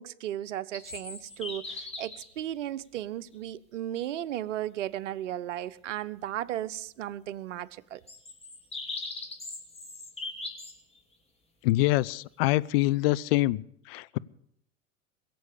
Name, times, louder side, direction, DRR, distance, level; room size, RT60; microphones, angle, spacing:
voice 1, 0.0-8.0, right 12 dB, 65° right, 0.8 m, -35 dB
sound 1, 0.7-2.3 3.3-3.4 8.1-10.8, left 3 dB, 15° left, 3.1 m, -39 dB
voice 2, 11.6-13.6 13.9-14.2, left 18 dB, 45° left, 0.6 m, -25 dB
21.5 x 7.8 x 8.5 m
figure-of-eight pair, 85°, 40 cm